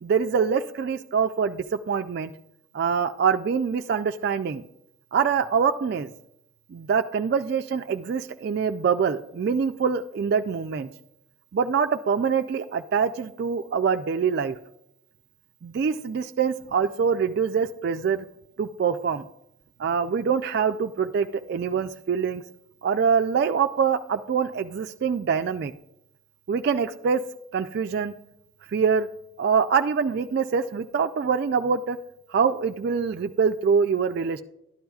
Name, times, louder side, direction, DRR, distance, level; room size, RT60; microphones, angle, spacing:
voice 1, 0.0-2.3 2.7-4.6 5.1-6.1 6.7-10.9 11.5-14.6 15.6-18.3 18.6-19.2 19.8-22.4 22.8-25.7 26.5-27.2 27.5-28.1 28.7-29.1 29.4-32.0 32.3-34.4, right 6 dB, 55° right, 8 dB, 0.3 m, -24 dB
12.0 x 10.0 x 2.3 m, 0.82 s
head